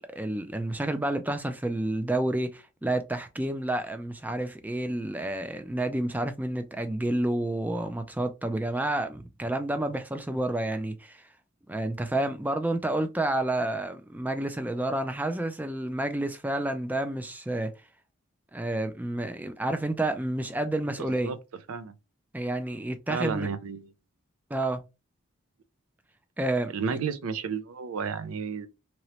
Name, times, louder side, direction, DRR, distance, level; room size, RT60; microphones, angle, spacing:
voice 1, 0.1-11.3 11.7-17.7 18.5-21.3 22.3-23.5 24.5-24.8 26.4-26.7, right 1 dB, 10° right, 0.3 m, -29 dB
voice 2, 21.0-21.4 21.7-21.9 23.1-23.9 26.7-28.7, right 6 dB, 75° right, 0.5 m, -32 dB
3.0 x 2.9 x 2.8 m
head